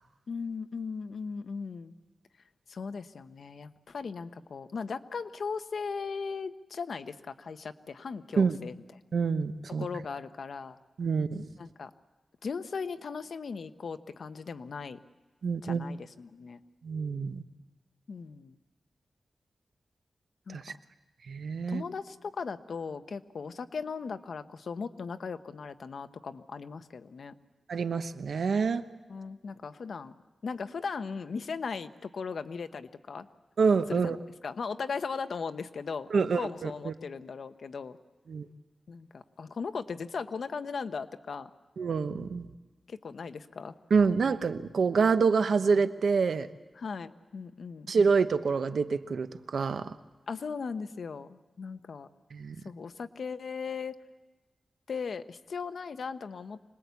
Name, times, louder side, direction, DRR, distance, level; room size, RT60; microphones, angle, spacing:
voice 1, 0.3-1.9 2.7-8.7 9.7-10.8 11.6-11.9 12.4-15.0 15.6-16.6 18.1-18.6 20.5-20.8 21.7-27.3 29.1-30.1 30.4-33.3 33.9-34.2 34.4-38.0 38.9-41.5 42.9-43.7 46.8-47.9 50.3-52.1 52.6-54.0 54.9-56.6, left 5 dB, 75° left, 10 dB, 1.0 m, -38 dB
voice 2, 9.1-9.9 11.0-11.5 15.4-15.8 16.8-17.4 20.5-20.7 21.3-21.8 27.7-28.9 33.6-34.2 36.1-36.9 38.3-38.5 41.8-42.5 43.9-46.5 47.9-50.0 52.3-52.5, right 5 dB, 80° right, 10 dB, 1.0 m, -27 dB
26.0 x 20.5 x 8.3 m, 1.2 s
wide cardioid pair, 120°, 0 cm